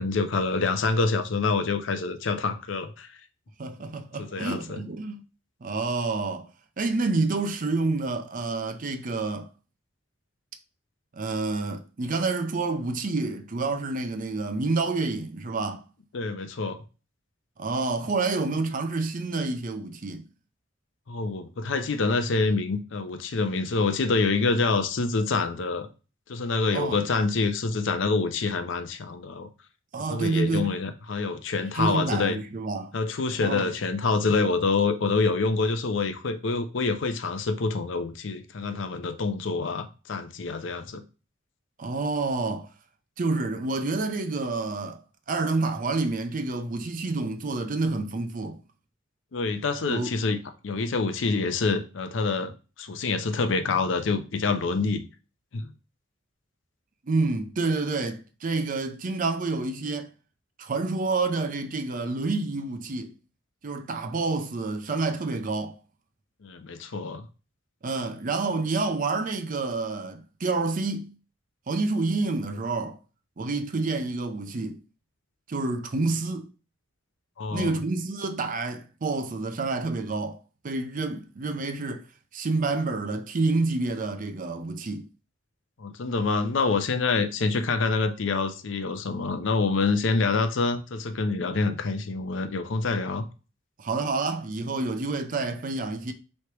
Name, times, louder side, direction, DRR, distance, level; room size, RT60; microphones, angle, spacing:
voice 1, 0.0-3.1 4.2-4.8 16.1-16.8 21.1-25.9 26.3-29.5 30.1-32.4 32.9-41.0 49.3-50.4 50.6-52.5 52.8-55.0 55.5-55.7 66.4-67.2 77.4-77.8 85.8-93.2, left 4 dB, 65° left, 0.5 m, -26 dB
voice 2, 3.6-5.2 5.6-6.5 6.8-9.5 11.1-15.8 17.6-20.2 26.7-27.0 29.9-30.8 31.7-33.0 33.4-33.7 41.8-42.7 43.2-45.0 45.3-48.6 49.9-50.1 57.0-60.1 60.6-63.1 63.6-65.7 67.8-71.2 71.7-73.0 73.4-74.8 75.5-76.5 77.5-80.4 80.6-82.0 82.3-85.1 93.8-96.1, right 3 dB, 40° right, 0.5 m, -28 dB
3.2 x 2.9 x 4.5 m
head